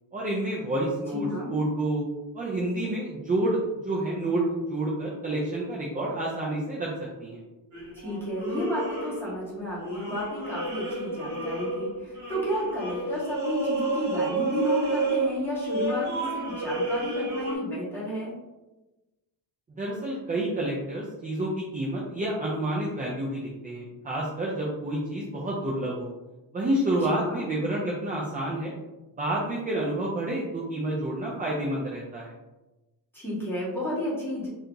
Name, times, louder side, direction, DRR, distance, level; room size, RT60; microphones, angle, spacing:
voice 1, 0.1-2.0 2.3-3.6 3.8-6.9 7.2-7.4 19.8-26.1 26.5-28.7 29.2-32.3, right 1 dB, 20° right, -3 dB, 0.3 m, -29 dB
voice 2, 1.1-1.5 7.9-18.4 27.0-27.5 33.1-34.5, equal, 5° left, -9 dB, 1.2 m, -31 dB
sound 1, 7.7-9.5 9.8-17.5, right 2 dB, 35° right, 1.0 m, -31 dB
2.7 x 2.5 x 3.6 m, 1.1 s
cardioid pair, 155°, 47 cm